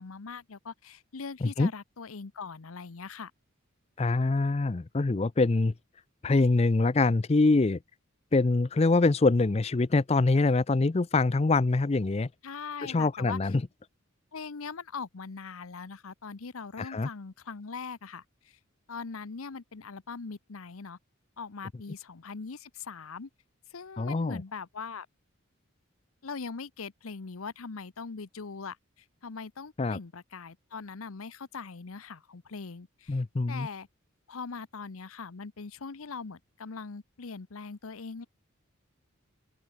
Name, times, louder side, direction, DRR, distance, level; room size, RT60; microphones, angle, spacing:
voice 1, 0.0-3.3 12.4-13.4 14.3-18.6 18.9-21.0 21.4-23.3 23.7-25.1 26.2-33.9 34.3-38.3, left 5 dB, 90° left, 0.8 m, -41 dB
voice 2, 4.0-5.7 6.2-7.8 8.3-12.3 12.8-13.6 16.8-17.1 24.0-24.4 29.8-30.0 33.1-33.7, left 3 dB, 30° left, 0.4 m, -24 dB
open air
head